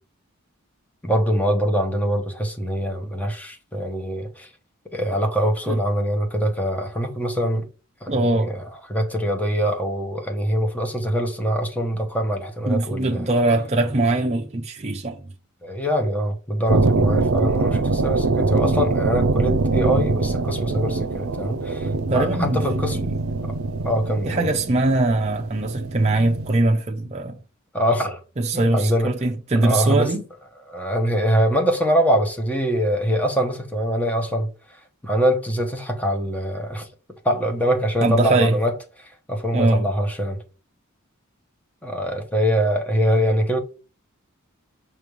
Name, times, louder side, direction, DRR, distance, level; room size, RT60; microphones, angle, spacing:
voice 1, 1.0-4.5 4.9-7.7 8.0-8.6 8.9-13.3 15.6-23.0 23.4-23.6 23.8-24.5 27.7-28.2 28.5-29.1 29.6-30.1 30.7-36.9 37.2-38.7 39.0-40.4 41.8-43.6, equal, 5° left, 1.0 m, -23 dB
voice 2, 8.1-8.5 12.7-15.2 22.1-22.6 22.9-23.1 24.3-27.4 28.4-30.2 38.0-38.6 39.5-39.9, right 2 dB, 30° right, 0.6 m, -21 dB
sound 1, 16.7-26.6, right 3 dB, 85° right, 0.5 m, -23 dB
5.9 x 3.2 x 5.2 m
head